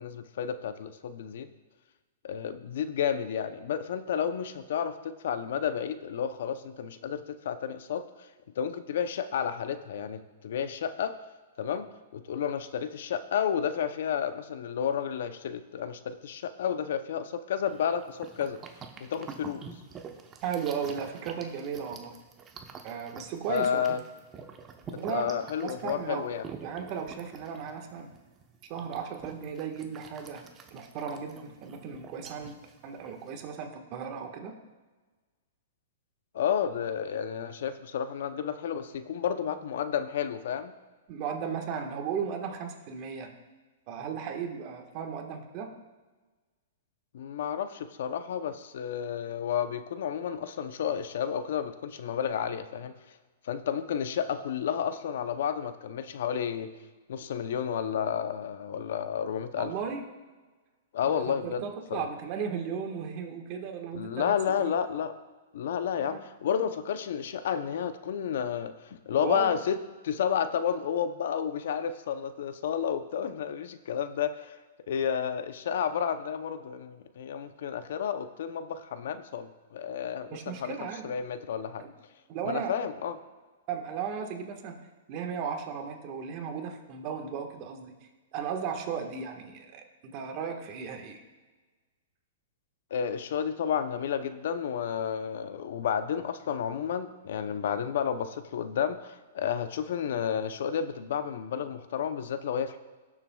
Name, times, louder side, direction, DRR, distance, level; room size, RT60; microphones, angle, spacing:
voice 1, 0.0-1.5 2.2-8.0 8.6-11.1 11.6-11.9 12.1-18.6 19.0-19.6 23.5-24.0 25.1-26.4 36.3-40.7 47.1-52.9 53.4-56.7 57.1-59.7 60.9-61.6 61.9-62.1 63.9-65.1 65.5-69.8 70.0-74.6 74.9-80.7 81.0-81.8 82.4-83.2 92.9-102.8, left 8 dB, 70° left, 11 dB, 0.6 m, -31 dB
sound 1, 17.7-33.5, right 6 dB, 25° right, 0.9 m, -47 dB
voice 2, 20.4-22.2 22.8-24.0 25.0-25.3 25.6-26.3 26.6-28.1 28.7-30.4 30.7-32.6 32.8-34.6 41.1-43.3 43.9-45.8 57.2-57.3 59.6-60.0 61.1-64.7 66.1-66.2 69.2-69.5 80.3-81.1 81.8-81.9 82.3-82.7 83.7-84.8 85.1-87.9 88.3-91.2, right 7 dB, 40° right, 4 dB, 1.4 m, -35 dB
17.5 x 7.3 x 2.3 m, 1.3 s
hypercardioid pair, 135°, 0 cm